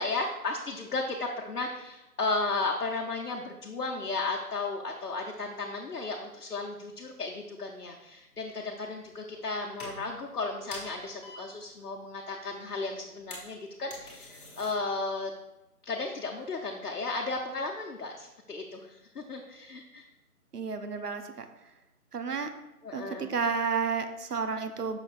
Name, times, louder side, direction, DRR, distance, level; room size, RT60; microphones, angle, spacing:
voice 1, 0.0-15.3 15.8-20.1 22.8-23.3, left 3 dB, 80° left, 1 dB, 0.9 m, -34 dB
sound 1, 8.7-9.4 9.7-10.3 10.7-11.6 11.9-12.0 12.2-12.3 12.4-12.6 13.0-14.7, left 2 dB, 35° left, 1.7 m, -45 dB
voice 2, 20.5-21.5 22.1-22.5 22.9-25.0, right 5 dB, 85° right, 8 dB, 0.9 m, -31 dB
7.4 x 6.2 x 2.5 m, 0.95 s
figure-of-eight pair, 160°, 45 cm